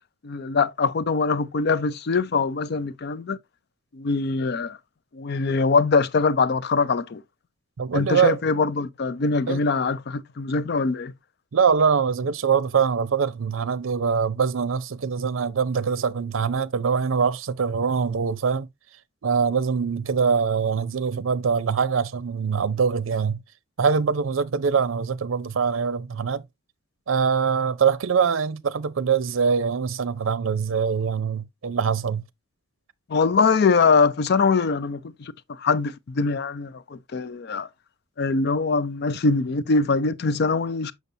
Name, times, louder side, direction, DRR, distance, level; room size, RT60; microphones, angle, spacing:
voice 1, 0.2-3.4 3.9-4.8 5.1-7.2 7.9-11.1 33.1-37.7 38.2-40.9, left 4 dB, 55° left, 0.5 m, -23 dB
voice 2, 7.8-8.4 9.5-9.6 11.5-18.7 19.2-23.4 23.8-26.4 27.1-32.2, right 6 dB, 85° right, 0.5 m, -23 dB
6.8 x 6.3 x 2.6 m
head